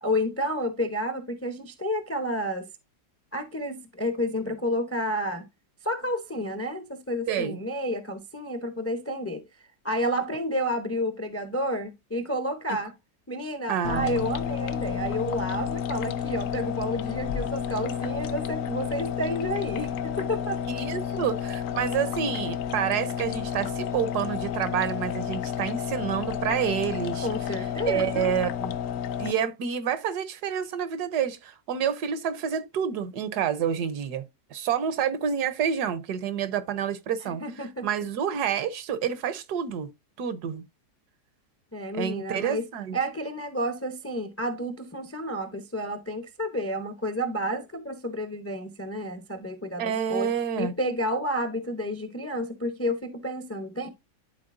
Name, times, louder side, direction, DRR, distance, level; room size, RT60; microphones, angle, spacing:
voice 1, 0.0-2.7 3.3-5.5 5.8-9.4 9.8-12.9 13.3-20.6 27.2-28.3 37.2-37.9 41.7-42.7 42.9-50.3 50.6-53.9, equal, 20° left, 0.3 m, -30 dB
voice 2, 7.3-7.6 13.7-14.3 20.7-27.3 27.9-28.8 29.2-34.2 34.5-37.4 37.8-39.9 40.2-40.6 41.9-43.0 49.8-50.7, right 8 dB, 75° right, 1.3 m, -28 dB
sound 1, 13.8-29.3, left 8 dB, 70° left, 0.7 m, -31 dB
11.5 x 4.2 x 2.5 m
omnidirectional pair, 1.8 m